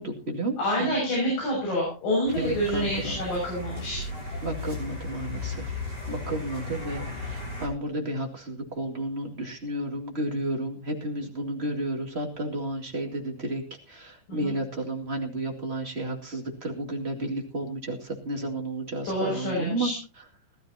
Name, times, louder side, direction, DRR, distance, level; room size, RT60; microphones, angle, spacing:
voice 1, 0.0-0.9 2.4-3.2 4.4-19.9, right 1 dB, 20° right, 1 dB, 2.0 m, -32 dB
voice 2, 0.6-4.0 14.3-14.5 19.1-19.9, equal, 75° left, -3 dB, 8.4 m, -27 dB
sound 1, 2.3-7.7, left 2 dB, 15° left, 6.8 m, -35 dB
20.0 x 13.0 x 2.8 m, 0.32 s
omnidirectional pair, 4.0 m